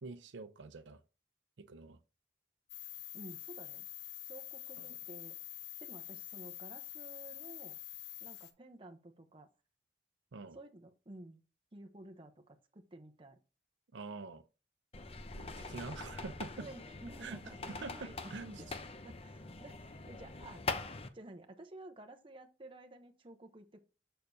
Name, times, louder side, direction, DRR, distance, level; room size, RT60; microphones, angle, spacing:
voice 1, 0.0-1.0 1.6-2.0 4.8-5.0 10.3-10.6 13.9-14.4 15.6-16.7 17.2-17.4 17.8-18.8, right 3 dB, 85° right, 0.6 m, -45 dB
sound 1, 2.7-8.5, left 13 dB, 70° left, 0.8 m, -47 dB
voice 2, 3.1-3.9 4.2-5.4 5.8-7.7 8.2-9.5 10.5-11.4 11.7-13.4 16.6-18.2 18.6-18.7 19.0-20.6 21.1-23.8, right 2 dB, 30° right, 0.8 m, -52 dB
sound 2, 14.9-21.1, left 3 dB, 35° left, 0.7 m, -43 dB
6.7 x 6.5 x 2.7 m
head